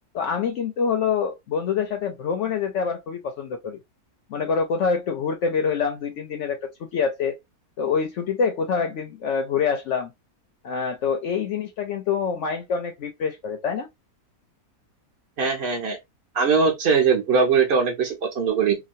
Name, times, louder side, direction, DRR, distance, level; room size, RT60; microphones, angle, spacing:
voice 1, 0.1-3.8 4.3-7.4 7.8-10.1 10.6-13.9, left 6 dB, 70° left, 0.7 m, -26 dB
voice 2, 15.4-16.0 16.3-18.8, right 5 dB, 50° right, 0.9 m, -21 dB
3.0 x 2.2 x 2.5 m
omnidirectional pair, 1.6 m